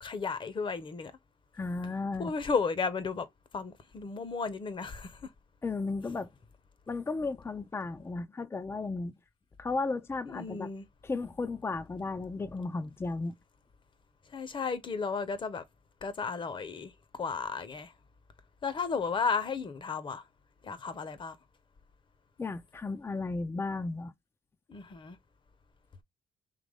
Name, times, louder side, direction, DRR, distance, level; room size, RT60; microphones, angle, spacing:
voice 1, 0.0-1.1 2.2-3.3 3.5-5.3 10.3-10.8 14.3-15.6 16.0-17.9 18.6-20.2 20.6-21.4 24.7-25.2, left 5 dB, 35° left, 0.9 m, -34 dB
voice 2, 1.5-2.3 5.6-6.3 6.9-9.1 9.6-10.7 11.0-13.3 22.4-24.1, left 3 dB, 15° left, 0.5 m, -34 dB
3.8 x 3.0 x 3.5 m
supercardioid pair, 70°, 14 cm